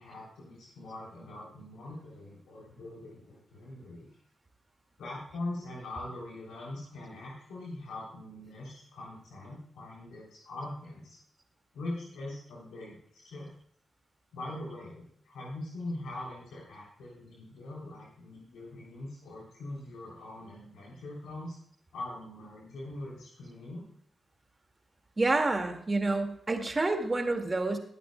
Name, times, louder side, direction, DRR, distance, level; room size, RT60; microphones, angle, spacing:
voice 1, 0.0-4.1 5.0-11.2 11.7-13.5 14.3-21.6 21.9-23.9, left 2 dB, 85° left, -4 dB, 3.3 m, -42 dB
voice 2, 25.2-27.8, right 2 dB, 30° right, 4 dB, 2.1 m, -28 dB
19.5 x 8.3 x 2.3 m, 0.65 s
supercardioid pair, 50°, 0 cm